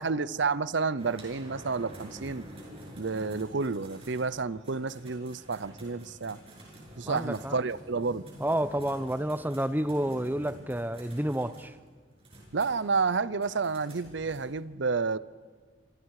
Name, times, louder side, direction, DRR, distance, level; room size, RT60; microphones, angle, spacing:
voice 1, 0.0-2.5 3.0-6.4 7.0-8.2 12.5-15.2, right 4 dB, 70° right, 17 dB, 0.7 m, -30 dB
sound 1, 1.0-14.4, right 1 dB, 30° right, 7.4 m, -49 dB
voice 2, 7.1-7.6 8.4-11.7, right 1 dB, 10° right, 13 dB, 0.8 m, -30 dB
30.0 x 26.5 x 4.9 m, 1.6 s
head